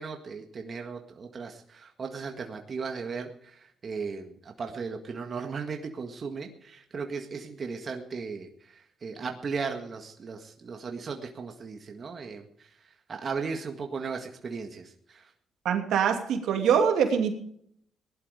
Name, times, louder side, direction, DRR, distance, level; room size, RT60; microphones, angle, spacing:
voice 1, 0.0-12.5 13.1-15.3, right 5 dB, 45° right, 4 dB, 1.8 m, -36 dB
voice 2, 15.6-17.3, right 7 dB, 80° right, 4 dB, 2.6 m, -24 dB
18.0 x 11.5 x 5.1 m, 0.67 s
cardioid pair, 90°, 0 cm